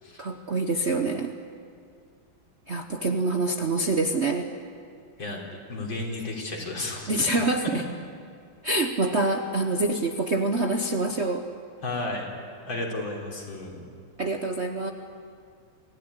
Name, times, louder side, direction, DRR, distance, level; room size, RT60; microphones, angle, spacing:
voice 1, 0.2-1.4 2.7-4.5 7.1-7.8 8.6-11.5 14.2-14.9, right 2 dB, 45° right, 4 dB, 1.0 m, -26 dB
voice 2, 5.7-7.2 11.8-12.3 12.7-13.8, left 2 dB, 65° left, -1 dB, 4.5 m, -33 dB
27.0 x 16.0 x 9.9 m, 2.3 s
omnidirectional pair, 2.3 m